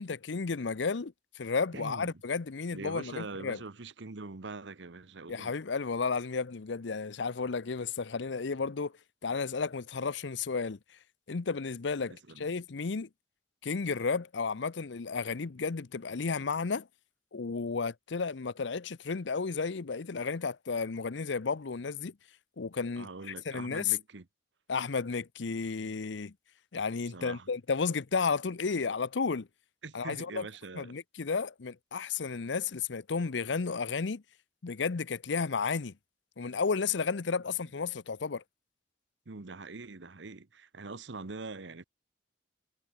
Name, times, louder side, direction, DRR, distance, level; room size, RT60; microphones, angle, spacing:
voice 1, 0.0-3.6 5.3-8.9 9.2-10.8 11.3-13.1 13.6-16.9 17.3-22.1 22.6-24.0 24.7-26.3 26.7-29.5 29.9-30.5 30.7-34.2 34.6-35.9 36.4-38.4, left 5 dB, 80° left, 0.7 m, -33 dB
voice 2, 1.7-2.1 2.7-5.5 12.1-12.4 23.0-24.3 27.1-27.5 29.8-30.9 39.3-41.8, right 3 dB, 80° right, 1.1 m, -43 dB
head